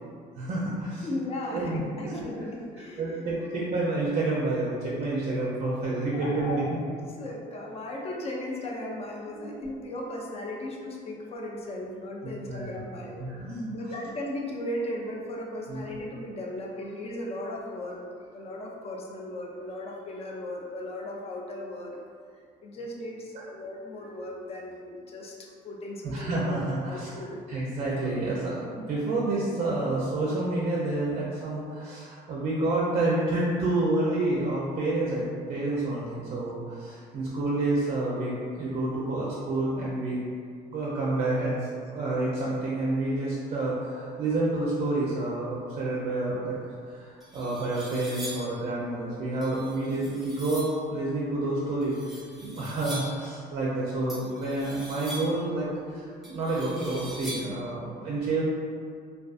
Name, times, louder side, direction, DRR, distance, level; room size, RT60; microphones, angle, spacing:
voice 1, 0.4-1.1 1.5-2.2 3.0-6.6 9.3-9.5 12.5-12.6 13.2-13.8 15.7-15.8 26.0-27.1 27.5-40.2 40.7-46.6 46.8-51.9 52.4-58.5, right 2 dB, 45° right, -5 dB, 0.4 m, -29 dB
voice 2, 1.0-3.5 6.0-22.0 22.6-26.5 26.9-27.4, left 1 dB, 35° left, -1 dB, 0.4 m, -37 dB
sound 1, 46.7-46.8 47.2-48.6 49.4-50.8 51.8-53.3 54.1-55.5 56.2-57.6, equal, ahead, 0.8 m, -42 dB
2.3 x 2.3 x 2.4 m, 2.2 s
cardioid pair, 110°, 17 cm